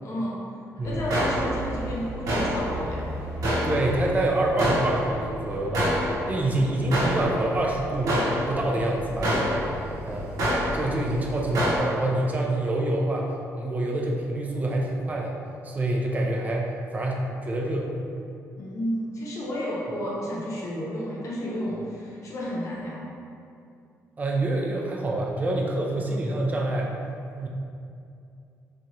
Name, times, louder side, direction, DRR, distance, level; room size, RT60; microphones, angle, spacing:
voice 1, 0.0-0.4 0.8-3.0 18.6-23.0, equal, 55° left, -6 dB, 0.7 m, -31 dB
voice 2, 0.8-1.1 3.6-5.9 6.3-9.6 10.1-10.3 10.7-15.3 15.6-17.9 24.2-26.9 27.4-27.5, right 1 dB, 25° right, -1 dB, 0.4 m, -26 dB
sound 1, 0.8-11.8, equal, 80° right, 0.8 m, -28 dB
2.9 x 2.3 x 2.7 m, 2.5 s
cardioid pair, 110°, 6 cm